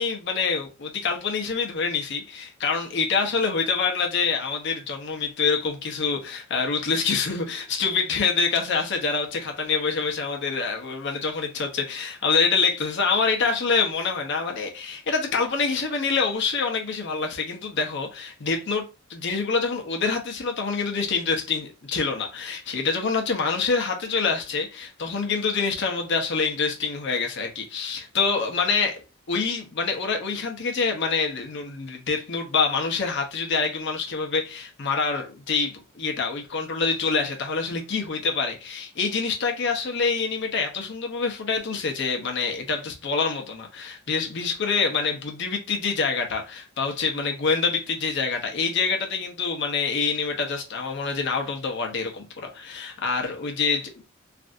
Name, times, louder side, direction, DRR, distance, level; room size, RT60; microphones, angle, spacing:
voice 1, 0.0-29.0 29.3-53.9, left 5 dB, 60° left, 0.8 m, -26 dB
3.3 x 2.6 x 2.5 m
head